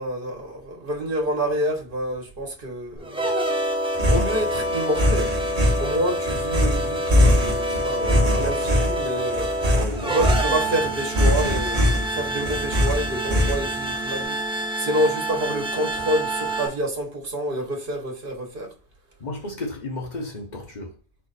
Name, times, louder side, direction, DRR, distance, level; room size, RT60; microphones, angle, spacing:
voice 1, 0.0-3.3 4.0-5.4 5.8-9.5 10.0-18.7, right 1 dB, 60° right, 1.4 m, -28 dB
sound 1, 3.0-16.7, right 1 dB, 5° right, 0.5 m, -27 dB
sound 2, 3.9-14.0, left 1 dB, 40° right, 1.1 m, -22 dB
voice 2, 9.8-10.3 10.8-10.9 19.2-20.9, left 2 dB, 45° left, 1.0 m, -33 dB
4.6 x 2.4 x 4.1 m
omnidirectional pair, 1.0 m